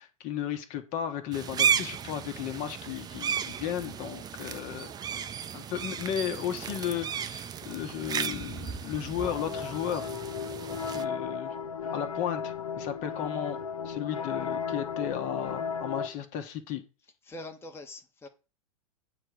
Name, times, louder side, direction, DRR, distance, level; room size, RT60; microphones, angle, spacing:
voice 1, 0.0-4.9 5.5-10.1 10.9-11.5 11.9-13.6 13.8-16.8, left 9 dB, 45° left, 1.4 m, -34 dB
sound 1, 1.3-11.0, right 8 dB, 20° right, 0.6 m, -34 dB
sound 2, 9.2-16.1, left 6 dB, 75° left, 1.0 m, -35 dB
voice 2, 17.3-18.3, left 2 dB, 15° left, 1.2 m, -43 dB
8.5 x 3.5 x 6.5 m
figure-of-eight pair, 95°, 19 cm